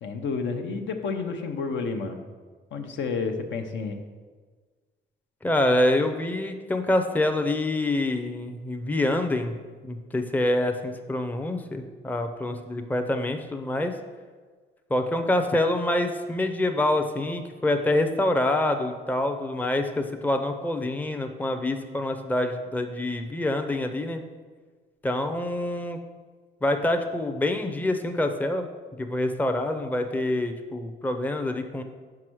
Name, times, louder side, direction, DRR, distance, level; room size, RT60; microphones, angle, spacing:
voice 1, 0.0-2.2 2.7-4.0, left 4 dB, 70° left, 5 dB, 0.8 m, -30 dB
voice 2, 5.4-9.6 9.8-14.0 14.9-24.2 25.0-26.0 26.6-28.7 29.0-31.8, left 1 dB, 10° left, 6 dB, 0.5 m, -26 dB
5.4 x 4.8 x 6.1 m, 1.5 s
cardioid pair, 90°, 20 cm